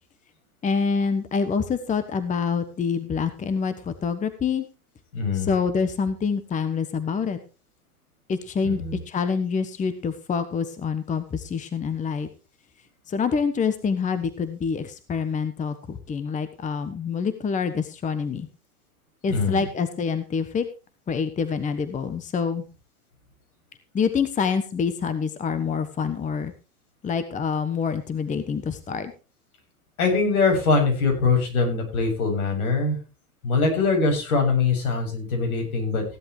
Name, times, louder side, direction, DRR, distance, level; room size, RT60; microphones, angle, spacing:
voice 1, 0.6-4.7 5.3-7.4 8.3-12.3 13.1-18.5 19.2-20.7 21.1-22.6 23.9-26.5 27.0-29.1, left 5 dB, 15° left, 11 dB, 1.2 m, -26 dB
voice 2, 5.1-5.5 8.6-9.0 19.3-19.6 30.0-33.0 33.4-36.0, left 4 dB, 70° left, 3 dB, 7.5 m, -22 dB
16.0 x 11.5 x 3.2 m, 0.33 s
hypercardioid pair, 110°, 44 cm